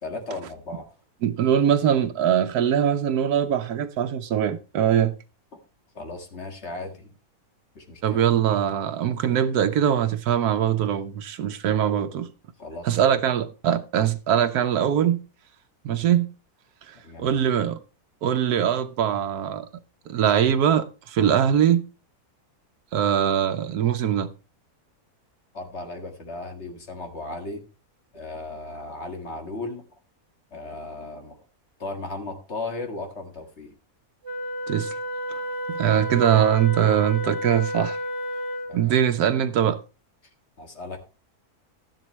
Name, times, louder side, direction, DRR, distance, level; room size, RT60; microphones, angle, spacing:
voice 1, 0.0-0.9 6.0-7.1 7.8-8.2 12.6-12.9 17.0-17.4 25.5-27.6 28.1-29.8 30.5-31.4 31.8-33.7 38.7-38.9 40.6-41.0, left 2 dB, 45° left, 2.0 m, -36 dB
voice 2, 1.2-5.1 8.0-12.3 12.8-15.2 15.8-16.3 16.9-17.8 18.2-19.7 20.1-21.9 22.9-24.3 34.7-35.0 35.7-38.0 38.7-39.8, right 9 dB, 85° right, 1.3 m, -22 dB
Wind instrument woodwind instrument, 34.2-38.9, equal, 50° right, 2.2 m, -31 dB
12.5 x 10.5 x 3.1 m
omnidirectional pair, 1.6 m